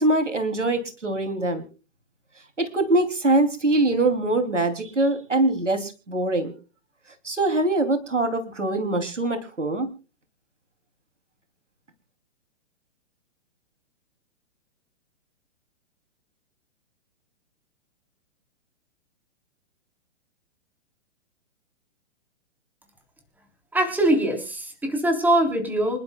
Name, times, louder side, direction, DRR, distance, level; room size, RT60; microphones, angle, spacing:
voice 1, 0.0-1.6 2.6-6.5 7.2-9.9, right 2 dB, 85° right, 9 dB, 3.0 m, -23 dB
voice 2, 23.7-26.0, right 1 dB, 5° right, 5 dB, 3.5 m, -22 dB
27.0 x 11.5 x 2.3 m, 0.34 s
figure-of-eight pair, 120°, 35 cm